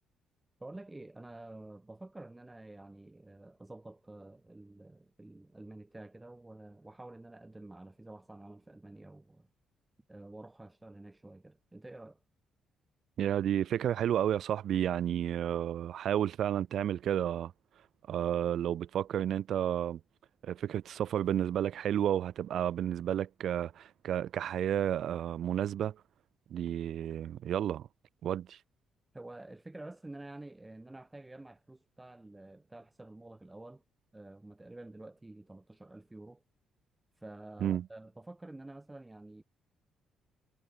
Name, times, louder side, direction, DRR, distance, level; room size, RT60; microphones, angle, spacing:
voice 1, 0.6-9.5 10.1-12.2 29.1-33.8 34.1-36.4 37.2-39.4, right 2 dB, 15° right, 4.3 m, -49 dB
voice 2, 13.2-17.5 18.1-20.0 20.4-26.0 26.5-27.9 28.2-28.6 37.6-37.9, right 10 dB, 70° right, 0.7 m, -31 dB
cardioid pair, 90°, 0 cm